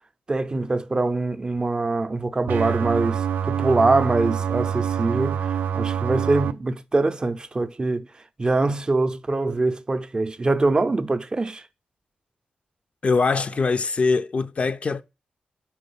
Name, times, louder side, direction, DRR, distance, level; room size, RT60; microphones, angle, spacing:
voice 1, 0.3-8.1 8.4-11.6, right 3 dB, 30° right, 0.5 m, -23 dB
sound 1, 2.5-6.5, right 8 dB, 90° right, 0.4 m, -25 dB
voice 2, 13.0-15.0, left 4 dB, 45° left, 0.3 m, -22 dB
4.5 x 3.9 x 5.4 m
cardioid pair, 80°, 3 cm